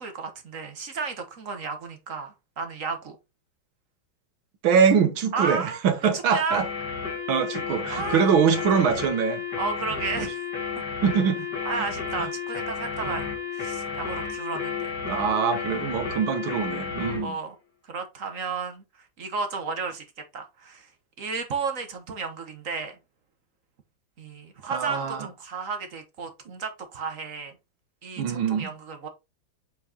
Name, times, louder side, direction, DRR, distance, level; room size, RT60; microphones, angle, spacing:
voice 1, 0.0-3.2 5.3-5.8 6.1-6.6 7.9-8.3 9.6-10.4 11.6-13.3 13.5-14.9 17.1-17.5 17.9-18.8 19.2-20.0 20.3-20.9 21.2-23.0 24.2-27.5 28.0-29.1, right 4 dB, 45° right, 1.3 m, -33 dB
voice 2, 4.6-6.7 7.3-9.4 10.2-10.3 11.0-11.5 11.8-11.9 12.2-12.3 13.1-13.2 15.0-17.4 24.6-25.3 28.2-28.7, right 6 dB, 85° right, 1.9 m, -23 dB
sound 1, 6.5-17.3, left 6 dB, 55° left, 3.1 m, -32 dB
8.1 x 4.6 x 2.8 m
omnidirectional pair, 2.2 m